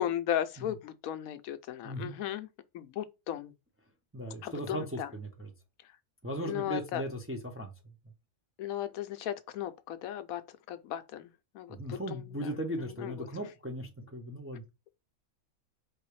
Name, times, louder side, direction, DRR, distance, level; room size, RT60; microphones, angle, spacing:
voice 1, 0.0-2.5 2.7-3.5 4.4-5.1 6.4-7.0 8.6-10.4 10.7-11.2 11.6-12.2 13.0-13.1, left 11 dB, 80° left, 1.0 m, -35 dB
voice 2, 1.8-2.1 4.1-5.5 6.2-7.7 11.7-14.6, right 1 dB, 15° right, 0.5 m, -37 dB
4.7 x 3.3 x 3.1 m
omnidirectional pair, 1.5 m